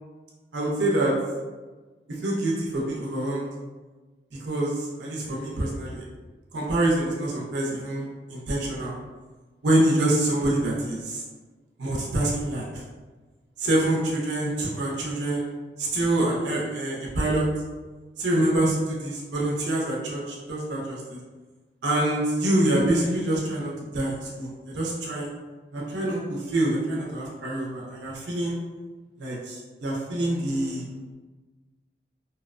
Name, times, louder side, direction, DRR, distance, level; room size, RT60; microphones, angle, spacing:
voice 1, 0.5-1.2 2.2-3.5 4.4-6.0 6.5-8.9 9.6-11.2 11.8-12.8 13.6-15.5 15.8-17.5 18.2-21.2 21.8-25.3 25.7-28.6 29.2-30.9, right 1 dB, 75° right, -4 dB, 0.5 m, -26 dB
2.7 x 2.0 x 2.4 m, 1.3 s
head